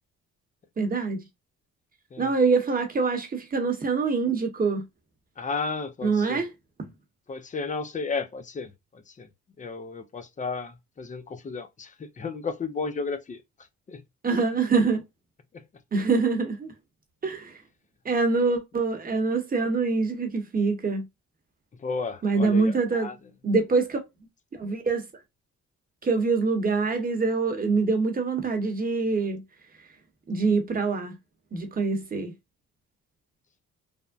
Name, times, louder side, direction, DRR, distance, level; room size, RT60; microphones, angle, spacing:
voice 1, 0.8-1.2 2.2-4.8 6.0-6.5 14.2-15.0 15.9-16.7 17.2-17.6 18.0-21.0 22.2-23.1 23.4-24.0 24.5-25.0 26.0-29.4 30.3-31.1 31.5-32.3, right 4 dB, 30° right, 0.9 m, -25 dB
voice 2, 5.4-6.4 7.3-9.3 9.6-13.4 13.9-14.0 15.5-15.6 21.8-23.2, left 4 dB, 25° left, 0.5 m, -33 dB
3.4 x 2.1 x 2.4 m
cardioid pair, 90°, 30 cm